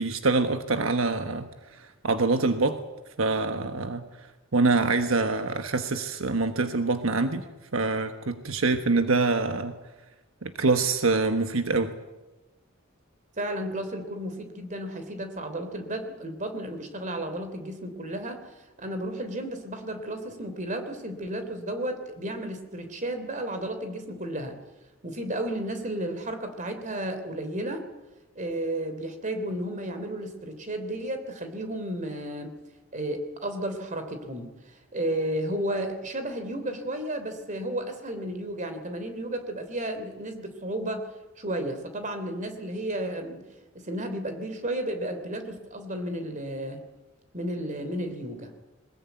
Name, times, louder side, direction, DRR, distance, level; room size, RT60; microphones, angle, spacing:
voice 1, 0.0-2.8 3.2-7.4 7.7-9.8 10.4-11.9, right 3 dB, 80° right, 8 dB, 1.3 m, -25 dB
voice 2, 13.4-18.4 18.8-24.5 25.0-27.8 28.3-32.5 32.9-41.1 41.4-43.4 43.7-46.8 47.3-48.5, right 1 dB, 40° right, 8 dB, 3.3 m, -33 dB
21.5 x 20.5 x 9.3 m, 1.1 s
head